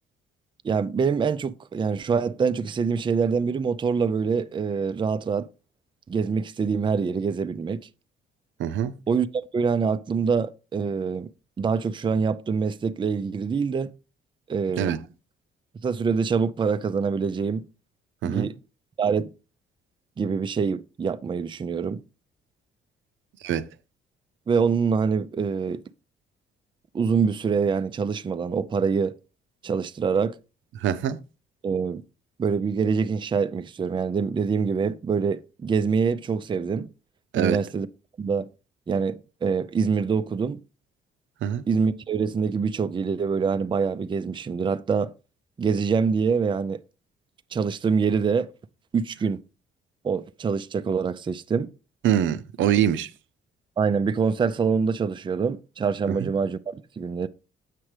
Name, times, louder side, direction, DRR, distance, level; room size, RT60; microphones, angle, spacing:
voice 1, 0.6-5.5 6.1-7.8 9.1-9.3 9.5-11.3 11.6-13.9 14.5-14.9 15.8-17.7 18.2-18.5 19.0-19.3 20.2-22.0 24.5-25.8 26.9-29.1 29.6-30.4 31.6-32.0 32.4-36.9 37.3-37.9 38.2-38.5 38.9-40.6 41.7-45.1 45.6-46.8 47.5-48.5 48.9-49.4 50.0-51.7 53.8-57.3, right 5 dB, 25° right, 0.4 m, -25 dB
voice 2, 8.6-8.9 14.8-15.0 18.2-18.5 23.4-23.7 30.8-31.2 37.3-37.6 41.4-41.6 52.0-53.1 56.2-56.3, right 10 dB, 75° right, 0.6 m, -24 dB
7.5 x 5.9 x 3.2 m
cardioid pair, 90°, 20 cm